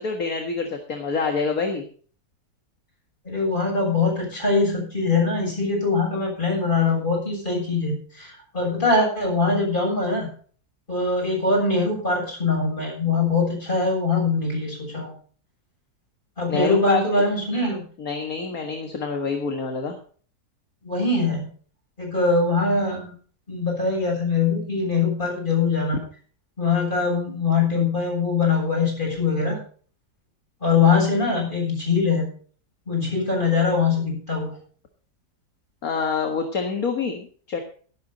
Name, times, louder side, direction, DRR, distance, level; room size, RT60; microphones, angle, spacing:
voice 1, 0.0-1.8 16.5-17.2 18.0-20.0 35.8-37.6, left 4 dB, 60° left, 4 dB, 2.1 m, -26 dB
voice 2, 3.2-10.3 10.9-15.1 16.4-17.8 20.8-21.5 22.0-23.1 23.5-26.0 26.6-29.6 30.6-32.3 32.9-34.6, left 4 dB, 30° left, -1 dB, 7.7 m, -22 dB
14.0 x 11.5 x 4.0 m, 0.44 s
omnidirectional pair, 1.7 m